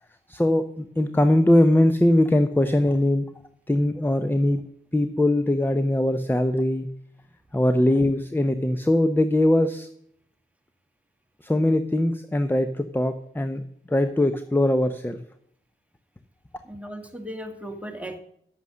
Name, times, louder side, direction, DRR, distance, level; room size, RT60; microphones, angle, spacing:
voice 1, 0.3-3.2 3.7-4.6 4.9-6.9 7.5-9.9 11.4-13.6 13.9-15.2, left 1 dB, 10° left, 10 dB, 0.8 m, -21 dB
voice 2, 16.6-18.2, equal, 5° right, 4 dB, 2.2 m, -36 dB
11.0 x 8.2 x 6.3 m, 0.68 s
cardioid pair, 55°, 21 cm